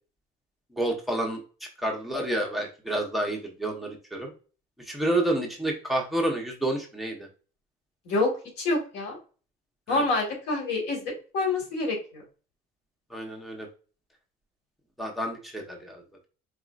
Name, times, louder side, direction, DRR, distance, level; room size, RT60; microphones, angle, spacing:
voice 1, 0.8-1.4 1.8-4.3 4.9-7.3 9.9-10.0 13.1-13.7 15.0-16.0, right 1 dB, ahead, 1 dB, 1.0 m, -29 dB
voice 2, 8.6-9.2 9.9-12.2, left 2 dB, 90° left, 0 dB, 1.8 m, -27 dB
4.8 x 2.9 x 2.4 m, 0.36 s
cardioid pair, 110°, 17 cm